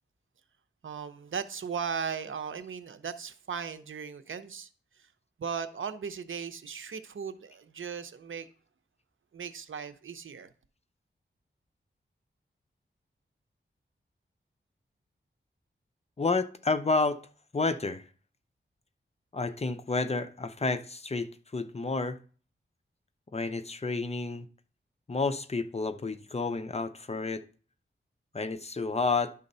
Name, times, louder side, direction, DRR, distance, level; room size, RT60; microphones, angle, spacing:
voice 1, 0.8-4.7 5.0-5.1 5.4-8.5 9.3-10.5, right 6 dB, 80° right, 0.7 m, -37 dB
voice 2, 16.2-17.2 17.5-18.0 19.3-22.2 23.3-24.5 25.1-27.4 28.3-29.3, left 3 dB, 30° left, 0.6 m, -30 dB
11.0 x 3.9 x 5.4 m
wide cardioid pair, 100°, 20 cm